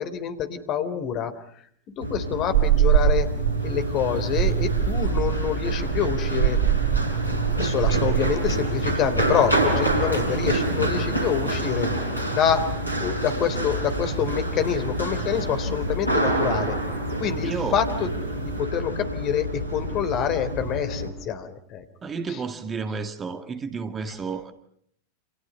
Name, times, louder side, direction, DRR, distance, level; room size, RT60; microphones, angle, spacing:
voice 1, 0.0-1.3 1.9-3.3 3.6-6.6 7.6-12.7 13.0-16.8 17.2-21.8 22.3-22.4 24.1-24.2, left 8 dB, 35° left, 3.7 m, -27 dB
Run, 2.0-21.1, equal, 85° left, 5.7 m, -27 dB
sound 1, 2.5-18.6, right 12 dB, 55° right, 1.1 m, -28 dB
voice 2, 17.4-17.8 22.0-24.5, right 5 dB, 20° right, 2.1 m, -31 dB
29.5 x 28.5 x 5.6 m
figure-of-eight pair, 90°, 0 cm